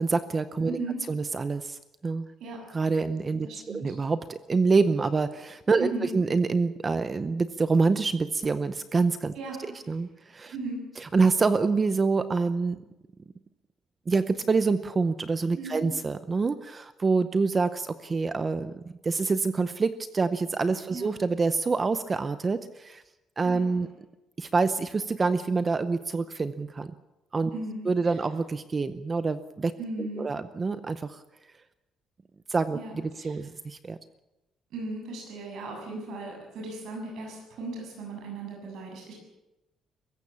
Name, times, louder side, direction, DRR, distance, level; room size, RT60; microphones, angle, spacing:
voice 1, 0.0-0.8 1.1-2.3 2.7-9.3 9.9-10.5 11.0-12.8 14.1-23.0 23.4-23.9 24.4-26.9 27.3-27.5 27.9-29.7 30.0-31.2 32.5-34.0, right 4 dB, 20° right, 12 dB, 0.7 m, -26 dB
voice 2, 3.4-3.9 5.8-6.1 9.4-9.6 10.5-10.8 15.6-15.9 20.9-21.1 23.5-23.7 27.5-27.9 29.8-30.3 32.7-33.4 34.7-39.1, right 3 dB, 65° right, 0 dB, 7.4 m, -36 dB
23.5 x 15.0 x 8.6 m, 0.97 s
cardioid pair, 175°, 0 cm